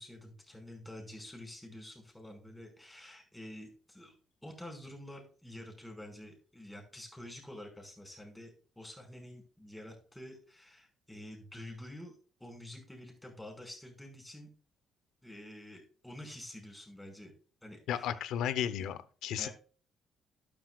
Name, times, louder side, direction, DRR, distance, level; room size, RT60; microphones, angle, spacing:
voice 1, 0.0-4.1 4.4-12.1 12.4-14.5 15.2-17.3 17.6-18.2 19.4-19.5, left 1 dB, 10° left, 2 dB, 5.5 m, -48 dB
voice 2, 17.9-19.5, left 10 dB, 85° left, 14 dB, 0.8 m, -34 dB
12.0 x 9.8 x 2.4 m, 0.39 s
cardioid pair, 90°, 0 cm